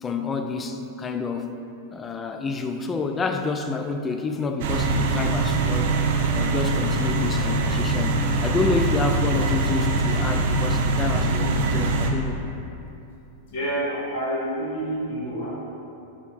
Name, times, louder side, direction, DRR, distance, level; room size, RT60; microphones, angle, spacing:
voice 1, 0.0-1.5 1.9-6.0 6.3-12.4, left 4 dB, 20° left, 6 dB, 0.3 m, -29 dB
sound 1, 4.6-12.1, right 2 dB, 60° right, 0.4 m, -23 dB
voice 2, 13.5-15.5, right 1 dB, 65° left, -6 dB, 1.4 m, -28 dB
4.1 x 2.9 x 4.1 m, 2.8 s
hypercardioid pair, 105°, 0 cm